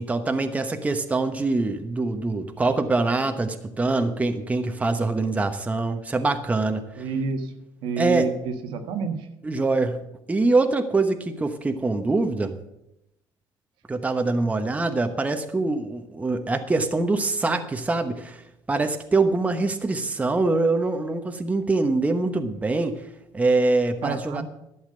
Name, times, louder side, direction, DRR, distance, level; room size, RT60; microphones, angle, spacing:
voice 1, 0.0-6.8 8.0-8.3 9.4-10.0 10.3-12.6 13.9-18.4 18.7-23.0 23.3-24.4, right 3 dB, 15° right, 6 dB, 1.0 m, -24 dB
voice 2, 7.0-7.5 7.8-9.2 24.0-24.4, right 4 dB, 80° right, 5 dB, 1.6 m, -28 dB
11.5 x 7.3 x 7.8 m, 0.85 s
cardioid pair, 105°, 9 cm